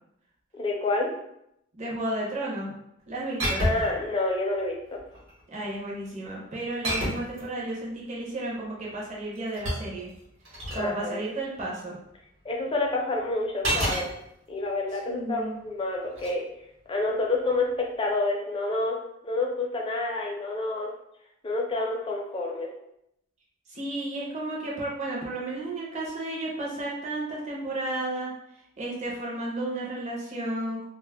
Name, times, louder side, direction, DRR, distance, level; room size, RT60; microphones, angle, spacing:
voice 1, 0.5-1.1 3.6-5.0 10.7-11.2 12.4-14.1 14.5-16.4 16.9-19.0 19.2-20.9 21.4-22.7, left 2 dB, 25° left, -1 dB, 0.4 m, -28 dB
voice 2, 1.7-2.7 3.1-3.7 5.5-10.1 10.7-12.0 15.1-15.6 23.7-28.3 28.8-30.9, right 1 dB, 35° right, -4 dB, 0.5 m, -33 dB
sound 1, 3.4-4.0 5.0-5.4 6.8-7.4 9.1-10.9 13.6-14.1 16.1-16.3, right 1 dB, 65° right, 0.9 m, -29 dB
2.2 x 2.0 x 3.3 m, 0.78 s
head